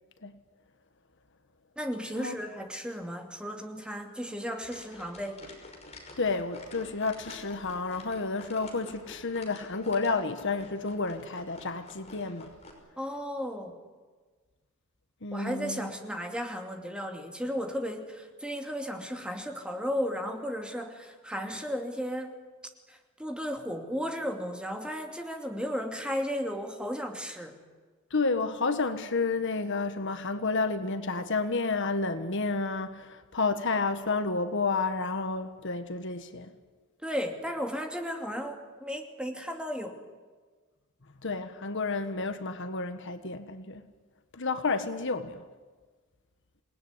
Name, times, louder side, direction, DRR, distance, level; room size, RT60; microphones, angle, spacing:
voice 1, 1.8-5.5 13.0-13.8 15.3-22.4 22.9-27.6 37.0-40.0, equal, 5° right, 2.6 m, -34 dB
sound 1, 4.6-12.7, left 2 dB, 30° left, 5.8 m, -49 dB
voice 2, 6.2-12.5 15.2-15.9 28.1-36.5 41.2-43.8 44.3-45.4, left 3 dB, 60° left, 1.5 m, -30 dB
28.0 x 19.0 x 9.8 m
head